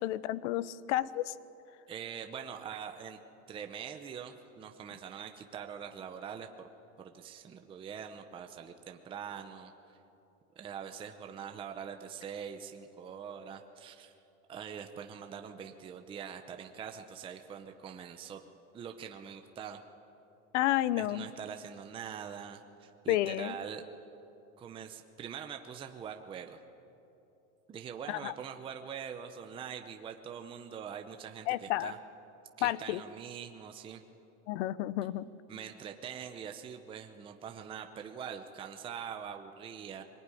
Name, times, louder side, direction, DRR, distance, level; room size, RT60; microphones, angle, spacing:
voice 1, 0.0-1.3 20.5-21.3 23.1-23.6 28.1-28.3 31.5-31.9 32.6-33.0 34.5-35.3, left 14 dB, 65° left, 18 dB, 0.9 m, -31 dB
voice 2, 1.9-3.2 3.5-6.7 7.0-9.7 10.6-14.1 14.5-18.4 18.7-19.8 21.0-23.8 24.6-26.6 27.7-32.0 32.6-34.0 35.5-40.0, right 7 dB, 15° right, 5 dB, 0.7 m, -43 dB
22.5 x 20.0 x 9.9 m, 2.8 s
supercardioid pair, 165°, 38 cm